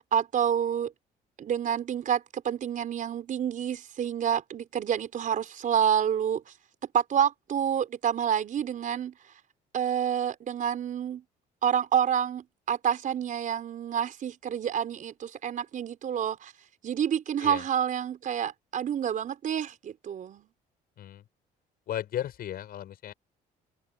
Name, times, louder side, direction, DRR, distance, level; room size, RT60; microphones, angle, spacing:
voice 1, 0.1-0.9 1.4-6.4 6.9-9.1 9.7-11.2 11.6-16.5 16.8-20.5, right 9 dB, 50° right, 4.9 m, -28 dB
voice 2, 21.9-23.1, left 11 dB, 60° left, 7.5 m, -35 dB
cardioid pair, 110°, 17 cm